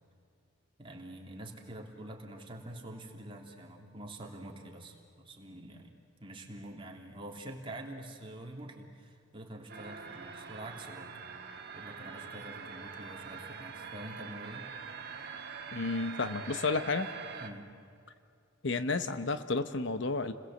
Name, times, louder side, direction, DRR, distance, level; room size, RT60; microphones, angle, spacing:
voice 1, 0.8-5.9 6.2-11.1 11.7-14.7 17.4-17.7, right 1 dB, 25° right, 0 dB, 3.0 m, -46 dB
sound 1, 9.7-17.5, right 6 dB, 55° right, 1.8 m, -44 dB
voice 2, 15.7-17.1 18.6-20.3, left 3 dB, 65° left, 10 dB, 1.0 m, -31 dB
30.0 x 21.5 x 7.9 m, 2.4 s
head